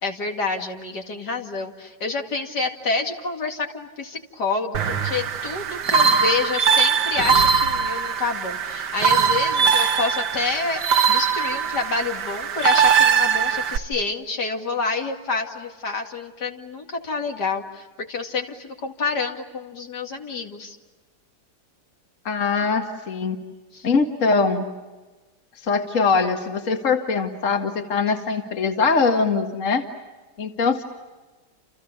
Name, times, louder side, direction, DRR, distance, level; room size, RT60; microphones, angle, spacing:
voice 1, 0.0-10.8 11.1-20.8 23.7-23.9, left 4 dB, 75° left, 3 dB, 2.9 m, -28 dB
sound 1, 4.7-13.8, right 6 dB, 75° right, 1.8 m, -21 dB
voice 2, 22.3-23.4 23.8-24.7 25.6-29.9 30.4-30.8, left 4 dB, 50° left, 4 dB, 2.2 m, -22 dB
30.0 x 29.0 x 6.8 m, 1.2 s
omnidirectional pair, 1.8 m